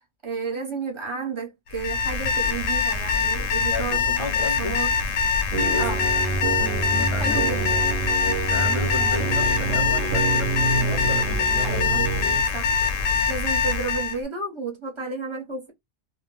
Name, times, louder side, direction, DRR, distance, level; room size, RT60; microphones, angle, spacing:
voice 1, 0.2-4.9 5.8-6.1 7.2-7.9 11.6-12.1 12.5-12.9 13.3-15.7, right 4 dB, 30° right, 0.7 m, -32 dB
Alarm, 1.7-14.2, left 6 dB, 80° left, 0.9 m, -24 dB
voice 2, 3.7-4.7 5.6-6.0 6.6-7.4 7.7-7.8 8.5-12.1, left 2 dB, 35° left, 0.5 m, -33 dB
sound 1, 5.5-12.4, right 4 dB, 65° right, 0.7 m, -27 dB
2.3 x 2.1 x 3.1 m
omnidirectional pair, 1.3 m